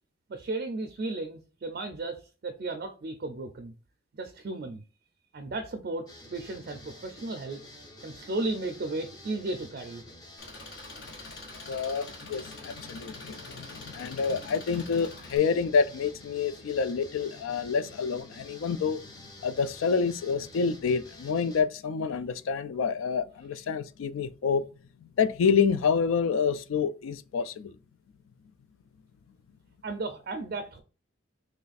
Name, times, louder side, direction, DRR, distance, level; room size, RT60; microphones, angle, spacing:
voice 1, 0.3-3.7 4.1-4.8 5.3-7.6 8.0-10.0 29.8-30.8, right 2 dB, 50° right, 0.4 m, -34 dB
sound 1, 6.1-21.6, left 1 dB, 20° left, 0.6 m, -49 dB
Engine, 10.4-15.4, left 2 dB, 55° left, 1.2 m, -46 dB
voice 2, 11.7-19.0 19.4-24.6 25.2-27.7, left 6 dB, 80° left, 0.3 m, -28 dB
3.2 x 2.4 x 4.0 m
head